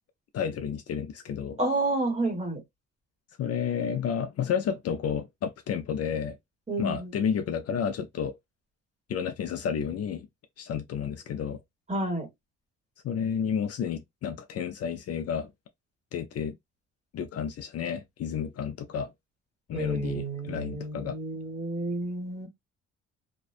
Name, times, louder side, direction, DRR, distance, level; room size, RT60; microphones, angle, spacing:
voice 1, 0.3-1.6 3.4-6.4 6.8-8.4 9.1-10.3 10.6-11.6 13.0-15.5 16.1-16.6 17.1-19.1 19.7-21.2, left 7 dB, 55° left, 0.5 m, -31 dB
voice 2, 1.6-2.6 6.7-7.1 11.9-12.3 19.7-22.5, right 2 dB, 20° right, 1.4 m, -30 dB
2.5 x 2.2 x 2.4 m
cardioid pair, 90°, 30 cm